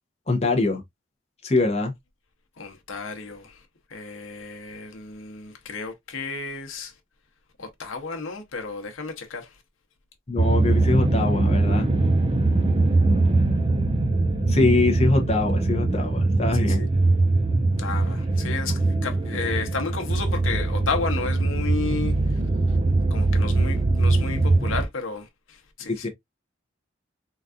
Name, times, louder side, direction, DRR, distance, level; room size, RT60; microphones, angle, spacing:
voice 1, 0.3-0.8 1.4-1.9 10.3-11.9 14.5-16.8 25.9-26.1, left 3 dB, 35° left, 0.7 m, -23 dB
voice 2, 2.6-3.6 3.9-6.9 7.6-9.6 16.5-16.9 17.8-22.4 23.1-26.1, left 4 dB, 85° left, 0.9 m, -32 dB
sound 1, 10.4-24.8, right 2 dB, 30° right, 0.6 m, -22 dB
3.9 x 2.4 x 2.4 m
head